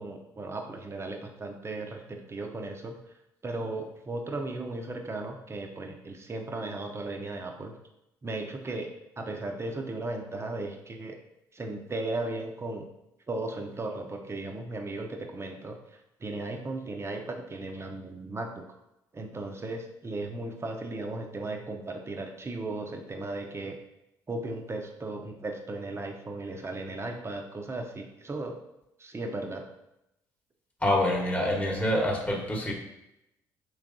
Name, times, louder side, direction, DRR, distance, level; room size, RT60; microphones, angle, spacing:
voice 1, 0.0-2.9 3.4-7.7 8.2-8.9 9.2-11.2 11.5-12.9 13.3-15.8 16.2-18.7 19.1-23.8 24.3-28.6 29.0-29.6, right 2 dB, 30° right, 3 dB, 0.8 m, -36 dB
voice 2, 30.8-32.7, left 1 dB, 15° left, 0 dB, 1.2 m, -26 dB
4.7 x 3.3 x 2.6 m, 0.86 s
hypercardioid pair, 55°, 9 cm